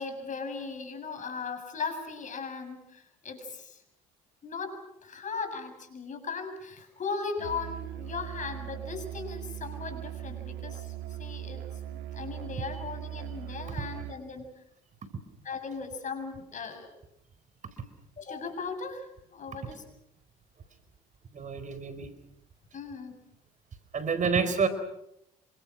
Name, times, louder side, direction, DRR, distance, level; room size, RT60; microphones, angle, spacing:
voice 1, 0.0-3.8 4.4-14.5 15.4-16.9 18.2-19.8 22.7-23.2, left 4 dB, 45° left, 7 dB, 7.4 m, -38 dB
Musical instrument, 7.4-14.3, right 11 dB, 70° right, 1.6 m, -39 dB
voice 2, 21.3-22.1 23.9-24.7, right 5 dB, 45° right, 11 dB, 4.5 m, -28 dB
28.0 x 25.5 x 6.2 m, 0.79 s
hypercardioid pair, 60°, 18 cm